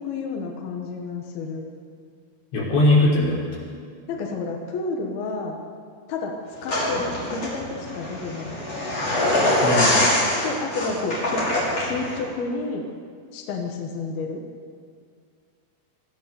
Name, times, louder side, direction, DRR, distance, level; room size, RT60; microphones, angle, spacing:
voice 1, 0.0-1.7 4.1-5.6 6.1-6.4 6.6-8.6 10.4-11.5 11.7-12.8 13.3-14.4, left 3 dB, 65° left, 1 dB, 3.2 m, -30 dB
voice 2, 2.5-3.4 9.6-10.1, left 2 dB, 85° left, -5 dB, 8.2 m, -19 dB
sound 1, 6.7-12.2, left 1 dB, 35° left, 6.7 m, -24 dB
24.5 x 15.5 x 7.0 m, 2.2 s
omnidirectional pair, 5.1 m